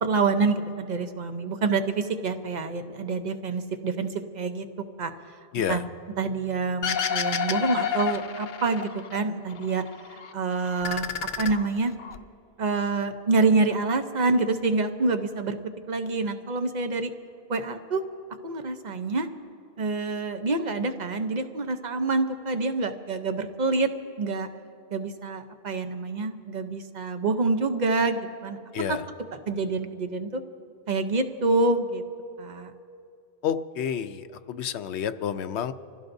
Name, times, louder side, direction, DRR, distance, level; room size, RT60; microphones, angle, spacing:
voice 1, 0.0-4.6 5.0-5.1 5.7-5.8 6.2-11.1 11.4-11.9 12.6-15.6 15.9-17.1 17.5-18.0 18.4-19.3 19.8-23.9 24.2-24.5 24.9-28.6 28.9-29.0 29.3-30.4 30.9-32.0 32.4-32.7, right 3 dB, 45° right, 8 dB, 0.8 m, -27 dB
sound 1, 6.8-9.2 9.5-10.3 10.7-12.2, left 7 dB, 55° left, 0.7 m, -29 dB
voice 2, 33.4-35.7, left 8 dB, 85° left, 11 dB, 0.9 m, -29 dB
26.0 x 16.0 x 2.6 m, 2.7 s
omnidirectional pair, 1.1 m